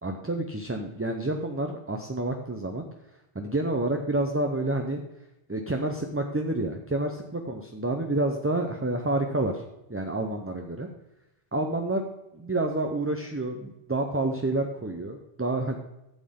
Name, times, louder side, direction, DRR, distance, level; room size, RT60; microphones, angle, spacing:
voice 1, 0.0-2.9 3.3-5.0 5.5-9.6 9.9-10.9 11.5-12.0 12.3-15.8, right 2 dB, 15° right, 3 dB, 0.6 m, -29 dB
12.5 x 7.6 x 3.7 m, 0.91 s
omnidirectional pair, 1.1 m